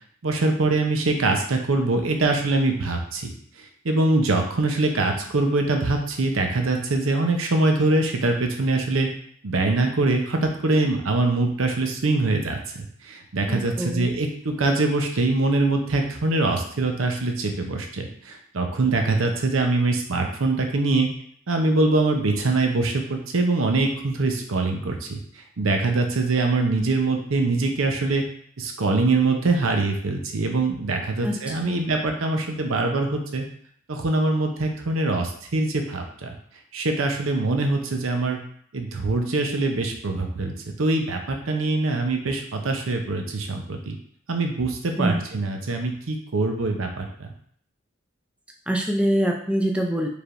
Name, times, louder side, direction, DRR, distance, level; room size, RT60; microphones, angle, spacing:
voice 1, 0.2-3.3 3.8-9.1 9.4-21.1 21.5-28.2 28.6-33.4 33.9-36.4 36.7-38.4 38.7-40.5 40.8-44.0 44.3-47.3, right 2 dB, 80° right, 4 dB, 0.7 m, -23 dB
voice 2, 13.5-14.1 31.2-31.9 45.0-45.2 48.7-50.1, right 1 dB, 5° right, 1 dB, 0.4 m, -25 dB
4.6 x 3.4 x 2.5 m, 0.62 s
head